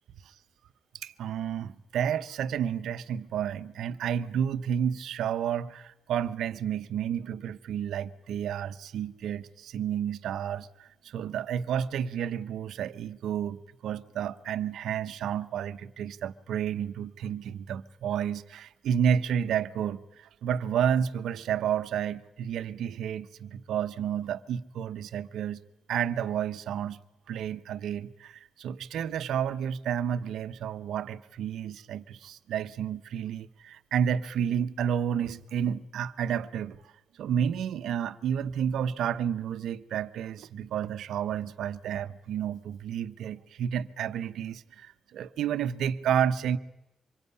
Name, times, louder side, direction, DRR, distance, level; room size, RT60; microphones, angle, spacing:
voice 1, 0.9-25.6 25.9-27.0 27.3-36.8 37.2-46.6, right 8 dB, 80° right, 1.0 m, -31 dB
26.0 x 22.5 x 9.7 m
hypercardioid pair, 45°, 0 cm